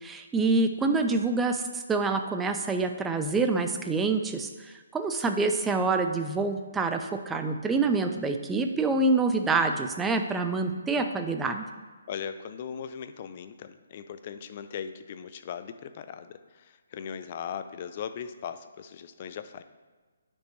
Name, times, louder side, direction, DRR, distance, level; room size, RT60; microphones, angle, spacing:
voice 1, 0.0-11.7, right 3 dB, 10° right, 6 dB, 0.5 m, -26 dB
voice 2, 12.1-19.6, left 8 dB, 40° left, 10 dB, 0.5 m, -39 dB
9.8 x 5.4 x 3.2 m, 1.4 s
figure-of-eight pair, 145°, 0 cm